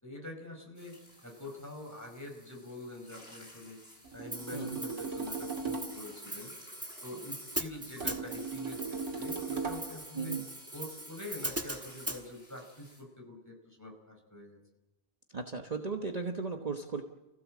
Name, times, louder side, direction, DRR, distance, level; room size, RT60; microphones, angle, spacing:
voice 1, 0.0-3.8 4.1-6.5 7.0-10.4 10.7-14.6, left 2 dB, 15° left, 1 dB, 4.8 m, -45 dB
sound 1, 0.7-13.0, left 1 dB, 55° left, 8.3 m, -57 dB
sound 2, 4.0-6.1 8.0-10.0, right 4 dB, 85° right, 2.6 m, -38 dB
Hi-hat, 4.3-12.2, right 1 dB, 10° right, 1.4 m, -41 dB
voice 2, 10.1-10.5 15.3-17.0, right 4 dB, 35° right, 3 dB, 1.3 m, -36 dB
29.0 x 16.0 x 7.5 m, 1.1 s
omnidirectional pair, 1.2 m